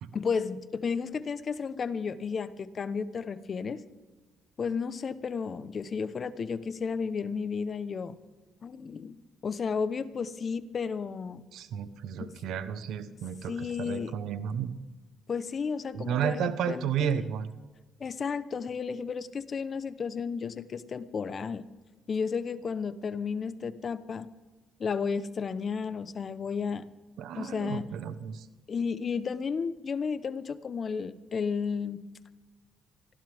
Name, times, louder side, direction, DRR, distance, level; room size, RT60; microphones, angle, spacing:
voice 1, 0.1-3.8 4.6-8.2 8.6-9.2 9.4-11.5 12.2-12.3 13.5-14.1 15.3-17.2 18.0-21.7 22.1-24.3 24.8-26.9 27.3-27.9 28.7-32.1, left 5 dB, 45° left, 13 dB, 1.0 m, -33 dB
voice 2, 11.5-14.8 15.9-17.5 27.2-28.5, right 9 dB, 80° right, 12 dB, 1.1 m, -32 dB
25.0 x 15.5 x 3.6 m, 1.3 s
cardioid pair, 90°, 0 cm